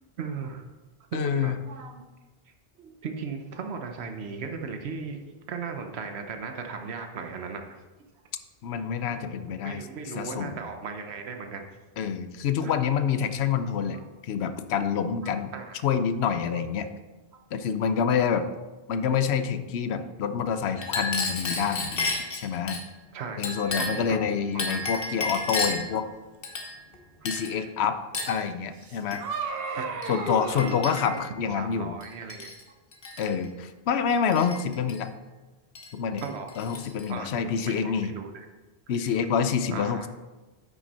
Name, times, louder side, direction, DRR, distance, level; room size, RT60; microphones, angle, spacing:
voice 1, 0.2-0.7 1.1-2.0 2.5-7.8 9.6-11.7 12.6-12.7 13.9-14.0 15.2-15.8 16.5-16.6 17.3-17.4 23.1-24.2 24.5-24.9 27.4-27.7 28.2-28.3 29.7-31.2 31.5-32.8 33.2-33.3 36.2-36.5 37.1-38.5 39.0-39.2 39.7-40.1, right 5 dB, 90° right, 5 dB, 1.0 m, -37 dB
voice 2, 1.1-1.6 8.6-9.8 10.2-10.6 12.0-15.5 15.8-16.9 17.5-18.5 18.9-22.8 23.4-26.0 27.2-28.0 28.3-29.2 30.1-31.9 33.2-35.1 35.9-36.2 36.6-38.1 38.9-40.1, left 7 dB, 85° left, 10 dB, 0.9 m, -27 dB
Chink clink, 20.8-22.8 23.4-24.1 24.6-25.9 26.4-27.0 27.3-27.6 28.1-28.4 29.1-29.3 30.0-30.2 30.6-31.3 32.0-32.6 32.9-33.3 34.3-35.0 35.8-35.9 36.2-37.1, left 3 dB, 60° left, 1.4 m, -32 dB
sound 1, 28.8-31.0, right 5 dB, 65° right, 1.0 m, -34 dB
9.4 x 6.1 x 4.1 m, 1.2 s
omnidirectional pair, 1.1 m